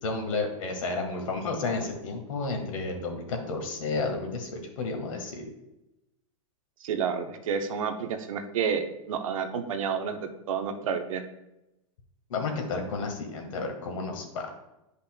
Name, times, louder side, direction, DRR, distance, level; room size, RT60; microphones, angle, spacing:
voice 1, 0.0-5.4 12.3-14.5, left 3 dB, 75° left, 3 dB, 1.6 m, -32 dB
voice 2, 6.8-11.2, right 6 dB, 75° right, 6 dB, 0.9 m, -30 dB
10.0 x 5.3 x 2.2 m, 0.93 s
hypercardioid pair, 130°, 17 cm